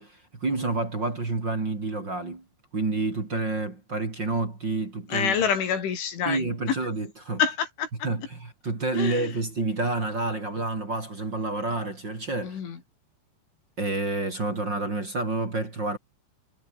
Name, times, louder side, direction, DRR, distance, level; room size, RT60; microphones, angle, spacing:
voice 1, 0.0-2.4 2.7-5.4 6.3-7.4 8.0-12.6 13.8-16.0, right 2 dB, 25° right, 3.8 m, -29 dB
voice 2, 5.1-6.8 7.4-8.1 8.9-9.3 12.4-12.8, left 7 dB, 85° left, 6.6 m, -27 dB
omnidirectional pair, 5.3 m